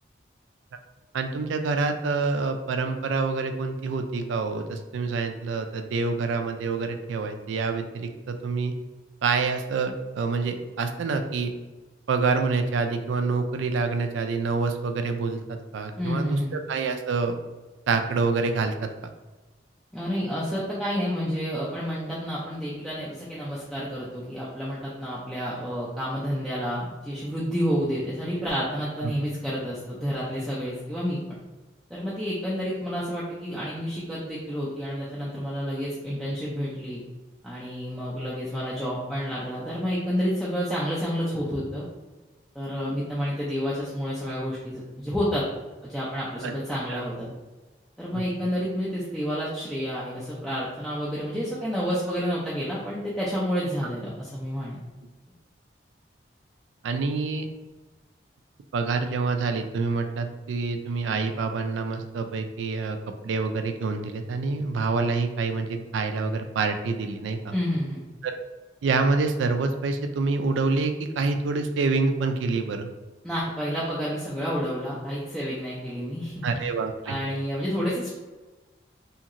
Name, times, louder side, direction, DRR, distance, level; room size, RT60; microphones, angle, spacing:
voice 1, 1.1-8.7 9.2-11.5 12.1-17.4 17.9-18.9 29.0-29.1 46.4-46.5 46.9-47.0 48.1-48.2 56.8-57.5 58.7-63.0 63.2-67.5 68.2-68.4 68.8-72.9 76.4-77.2, right 4 dB, 85° right, 7 dB, 0.3 m, -27 dB
voice 2, 16.0-16.5 19.9-31.2 31.9-37.0 37.4-41.9 42.5-45.4 45.8-47.3 48.0-54.8 67.5-68.0 73.2-76.4 77.1-78.1, equal, ahead, -8 dB, 0.4 m, -29 dB
2.8 x 2.8 x 2.5 m, 1.2 s
head